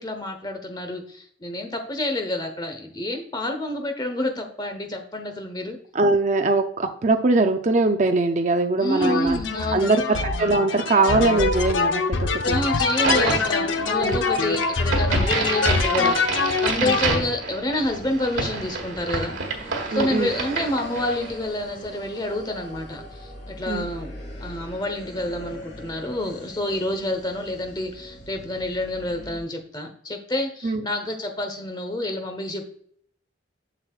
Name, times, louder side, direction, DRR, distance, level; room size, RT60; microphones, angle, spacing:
voice 1, 0.0-5.8 8.8-10.0 12.4-19.3 19.9-24.1 24.4-32.6, left 1 dB, 20° left, 4 dB, 1.0 m, -28 dB
voice 2, 5.9-9.4 9.7-12.6 14.0-14.2 16.8-17.0 19.9-20.3 23.7-23.9 30.6-30.8, right 3 dB, 40° right, 5 dB, 0.5 m, -21 dB
sound 1, 9.0-17.2, left 4 dB, 75° left, 0.7 m, -24 dB
Crack, 12.8-21.4, right 3 dB, 90° right, 1.6 m, -29 dB
sound 2, 17.8-29.4, equal, 40° left, 3.0 m, -41 dB
7.5 x 6.5 x 2.4 m, 0.62 s
head